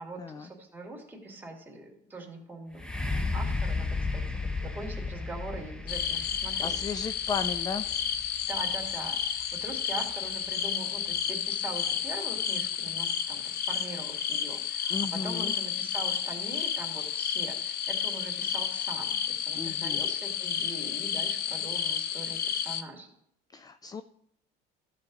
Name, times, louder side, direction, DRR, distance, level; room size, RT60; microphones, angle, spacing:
voice 1, 0.0-2.9 3.3-7.1 8.4-23.1, right 2 dB, 10° right, -1 dB, 2.6 m, -42 dB
sound 1, 2.7-10.5 11.1-11.2, left 3 dB, 5° left, 0.9 m, -34 dB
sound 2, 5.9-22.8, left 8 dB, 60° left, 0.8 m, -31 dB
voice 2, 6.6-8.0 14.9-15.5 19.6-20.0 23.5-24.0, left 5 dB, 20° left, 11 dB, 0.4 m, -35 dB
13.5 x 6.6 x 4.0 m, 0.75 s
cardioid pair, 110°, 18 cm